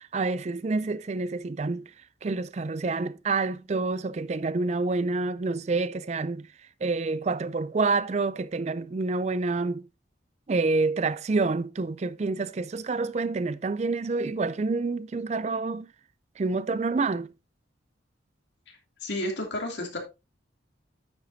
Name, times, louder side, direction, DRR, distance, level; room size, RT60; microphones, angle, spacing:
voice 1, 0.0-1.9 2.2-6.4 6.8-9.9 10.5-15.9 16.4-17.3, right 3 dB, 35° right, 0.4 m, -28 dB
voice 2, 18.7-20.0, left 1 dB, 70° left, 2.8 m, -32 dB
9.9 x 8.1 x 2.7 m
head